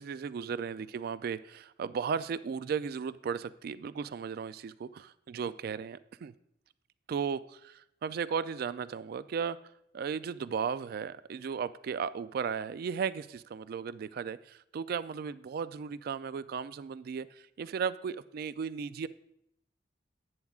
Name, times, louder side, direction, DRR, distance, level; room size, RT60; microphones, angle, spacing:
voice 1, 0.0-6.3 7.1-9.6 9.9-19.1, right 6 dB, 55° right, 15 dB, 0.3 m, -35 dB
10.5 x 9.4 x 2.4 m, 0.78 s
head